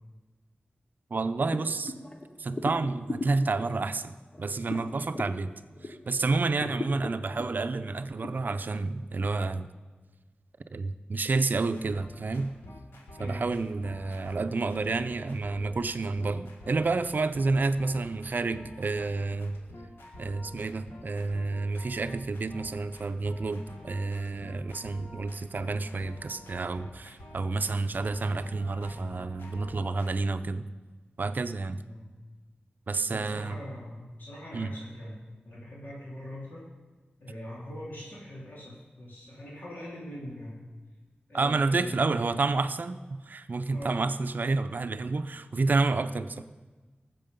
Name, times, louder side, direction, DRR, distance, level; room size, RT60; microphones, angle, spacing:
voice 1, 1.1-1.9 2.4-5.5 5.8-9.7 10.7-12.5 13.2-19.6 20.2-30.6 31.2-31.8 32.9-33.6 34.5-34.7 41.3-46.4, right 3 dB, 55° right, 11 dB, 0.5 m, -29 dB
sound 1, 1.5-6.1 6.5-8.3, left 2 dB, 30° left, 1.0 m, -39 dB
sound 2, 11.7-30.1, left 1 dB, 90° left, 1.7 m, -48 dB
voice 2, 13.2-13.5 31.9-32.1 33.1-36.7 37.2-40.6 41.3-42.0 43.7-44.0, left 1 dB, 60° left, -5 dB, 2.9 m, -42 dB
18.5 x 7.6 x 5.3 m, 1.3 s
wide cardioid pair, 110°, 4 cm